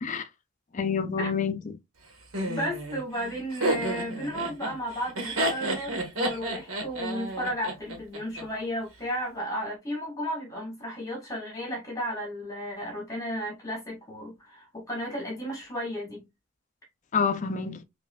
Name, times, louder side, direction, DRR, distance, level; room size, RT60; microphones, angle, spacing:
voice 1, 0.7-1.7 17.1-17.8, left 6 dB, 35° left, 0.4 m, -28 dB
Laughter, 2.3-8.4, right 1 dB, 80° right, 1.3 m, -31 dB
voice 2, 2.5-16.2, equal, 15° left, 1.3 m, -34 dB
5.4 x 2.5 x 2.2 m
head